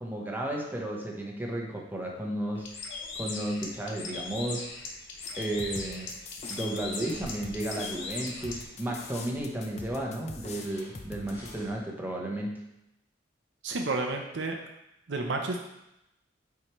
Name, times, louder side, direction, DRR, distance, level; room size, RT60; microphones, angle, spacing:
voice 1, 0.0-2.7 3.2-4.7 5.4-6.1 6.5-12.5, right 1 dB, 10° right, -1 dB, 1.0 m, -33 dB
Bird, 2.6-8.6, left 3 dB, 80° left, 1.0 m, -39 dB
sound 1, 5.1-11.7, equal, 60° left, 1.8 m, -52 dB
sound 2, 5.2-11.5, left 3 dB, 35° left, 0.6 m, -43 dB
voice 2, 13.6-14.6 15.1-15.6, right 3 dB, 75° right, 2 dB, 0.6 m, -30 dB
8.0 x 4.7 x 3.1 m, 0.88 s
head